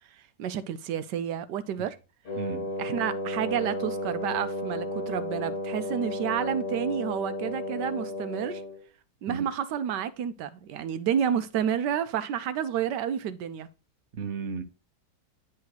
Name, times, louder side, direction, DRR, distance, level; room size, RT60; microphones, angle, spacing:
voice 1, 0.4-2.0 2.8-8.6 9.2-13.7, right 9 dB, 85° right, 1.3 m, -30 dB
Wind instrument woodwind instrument, 2.3-8.8, left 1 dB, 45° left, 2.1 m, -33 dB
voice 2, 2.3-2.7 9.3-9.5 14.1-14.6, right 5 dB, 50° right, 1.1 m, -34 dB
9.8 x 3.5 x 4.7 m
omnidirectional pair, 1.8 m